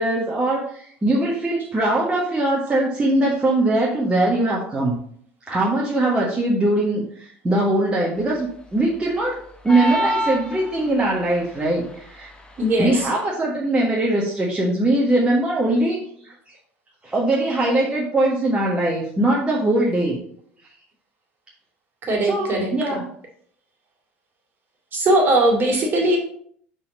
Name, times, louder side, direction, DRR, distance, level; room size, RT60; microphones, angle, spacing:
voice 1, 0.0-5.0 5.5-9.4 9.6-12.3 12.8-16.3 17.0-20.2 22.2-23.1, right 1 dB, 15° right, -4 dB, 1.3 m, -21 dB
sound 1, 9.7-11.1, right 1 dB, 15° left, 1.1 m, -25 dB
voice 2, 12.6-13.1 22.0-23.0 24.9-26.2, right 1 dB, 35° right, 0 dB, 2.2 m, -20 dB
6.0 x 4.2 x 5.0 m, 0.63 s
figure-of-eight pair, 65°, 6 cm